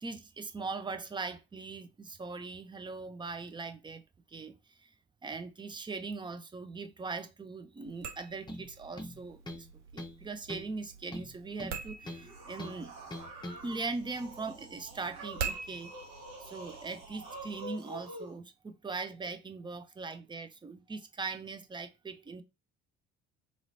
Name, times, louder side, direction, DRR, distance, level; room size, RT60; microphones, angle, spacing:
voice 1, 0.0-4.0 4.3-4.9 5.2-9.7 9.9-12.9 13.6-15.9 16.4-22.4, right 4 dB, 15° right, 0.5 m, -40 dB
sound 1, 7.8-17.6, right 6 dB, 80° right, 0.6 m, -45 dB
sound 2, 8.5-8.7 9.0-9.7 10.0-10.2 10.5-10.7 11.1-12.3 12.6-12.8 13.1-13.6, left 1 dB, 15° left, 0.8 m, -42 dB
sound 3, 12.0-18.3, right 1 dB, 60° right, 1.5 m, -47 dB
4.2 x 2.9 x 2.6 m
figure-of-eight pair, 50°, 35 cm